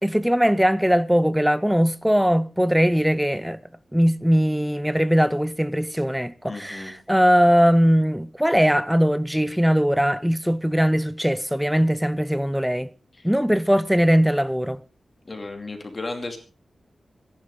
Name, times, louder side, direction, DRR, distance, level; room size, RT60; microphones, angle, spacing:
voice 1, 0.0-3.6 3.9-12.9 13.2-14.8, equal, ahead, 0.6 m, -20 dB
voice 2, 6.5-6.9 15.3-16.4, left 2 dB, 25° left, 2.6 m, -34 dB
25.5 x 10.5 x 3.8 m
wide cardioid pair, 180°, 0 cm